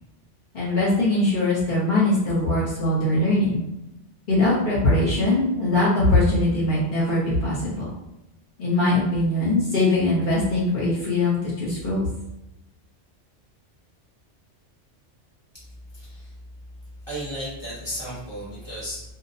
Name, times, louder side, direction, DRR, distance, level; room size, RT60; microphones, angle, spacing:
voice 1, 0.5-3.6 4.3-7.9 8.6-12.1, left 2 dB, 50° left, -7 dB, 0.8 m, -21 dB
voice 2, 15.9-16.3 17.1-19.0, equal, 25° right, -9 dB, 0.7 m, -34 dB
2.5 x 2.0 x 2.6 m, 0.90 s
omnidirectional pair, 1.2 m